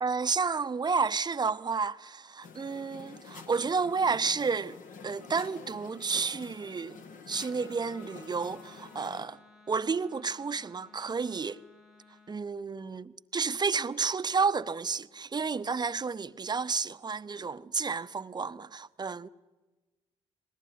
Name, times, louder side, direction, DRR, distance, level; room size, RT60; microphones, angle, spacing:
voice 1, 0.0-4.8 5.0-9.4 9.7-11.6 12.3-19.3, right 5 dB, 25° right, 0.9 m, -31 dB
sound 1, 2.4-9.2, left 5 dB, 55° left, 1.8 m, -48 dB
Wind instrument woodwind instrument, 7.3-12.4, left 3 dB, 5° right, 1.3 m, -58 dB
30.0 x 20.5 x 9.8 m
figure-of-eight pair, 45°, 16 cm